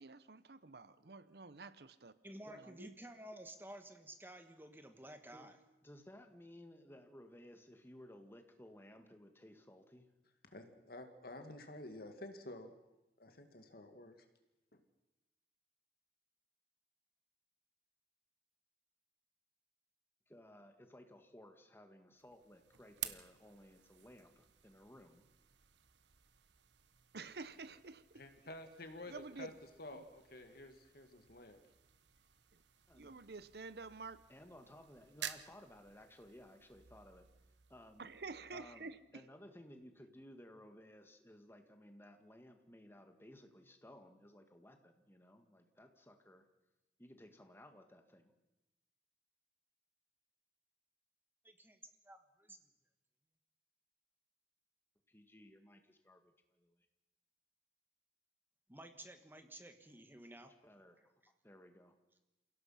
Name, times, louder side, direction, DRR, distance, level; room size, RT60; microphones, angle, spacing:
voice 1, 0.0-2.1 2.5-2.9 27.1-28.2 29.1-29.5 29.9-30.1 32.9-34.2 38.0-39.3, right 3 dB, 60° right, 15 dB, 0.8 m, -50 dB
voice 2, 2.2-5.6 51.4-51.8 52.0-52.6 58.7-60.5, right 1 dB, 10° right, 7 dB, 1.4 m, -53 dB
voice 3, 5.8-10.1 20.3-25.2 32.9-33.2 34.3-37.2 37.7-38.1 38.5-46.4 47.0-48.3 55.1-56.8 60.6-61.1 61.4-61.9, left 1 dB, 15° left, 6 dB, 1.8 m, -58 dB
voice 4, 10.4-12.7 13.2-14.2 14.7-14.8 28.1-29.5 29.8-31.6, left 1 dB, 55° left, 7 dB, 2.1 m, -51 dB
sound 1, 22.1-39.1, right 10 dB, 85° right, 1.1 m, -54 dB
28.0 x 17.0 x 5.8 m, 1.0 s
head